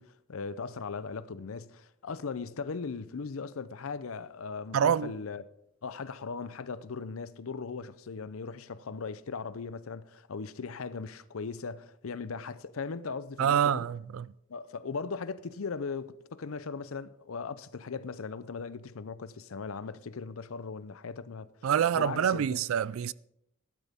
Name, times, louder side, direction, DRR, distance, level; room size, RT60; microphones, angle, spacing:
voice 1, 0.0-5.4 5.8-13.8 14.5-21.7 21.9-22.6, left 5 dB, 90° left, 0.6 m, -38 dB
voice 2, 4.7-5.1 13.4-14.3 21.6-23.1, right 8 dB, 80° right, 0.3 m, -26 dB
15.0 x 12.0 x 3.6 m
head